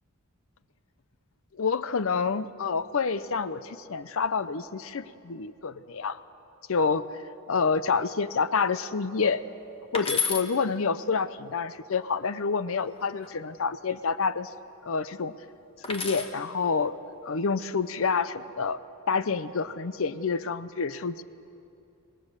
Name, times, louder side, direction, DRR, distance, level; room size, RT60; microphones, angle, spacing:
voice 1, 1.6-6.2 6.7-7.1 7.5-9.4 9.9-14.5 14.9-15.3 15.9-17.0 17.2-18.8 19.1-21.2, left 5 dB, 60° left, 15 dB, 0.6 m, -28 dB
sound 1, 9.9-10.5 12.7-13.3 15.8-16.4 17.7-18.1, left 6 dB, 25° left, 1.2 m, -31 dB
24.5 x 19.5 x 6.6 m, 2.6 s
head